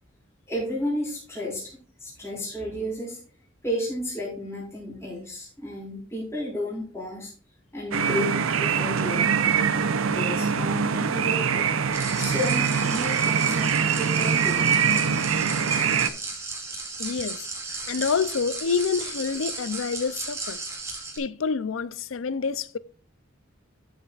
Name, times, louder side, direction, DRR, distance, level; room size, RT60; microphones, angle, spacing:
voice 1, 0.5-3.2 3.6-7.3 7.7-8.3 8.6-9.6 10.1-11.7 12.2-14.6, left 1 dB, 15° left, 4.2 m, -32 dB
sound 1, 7.9-16.1, right 6 dB, 90° right, 0.7 m, -23 dB
sound 2, 11.9-21.2, right 3 dB, 15° right, 2.3 m, -35 dB
voice 2, 17.0-20.6 21.2-22.8, left 5 dB, 80° left, 0.5 m, -28 dB
12.5 x 7.3 x 2.4 m
head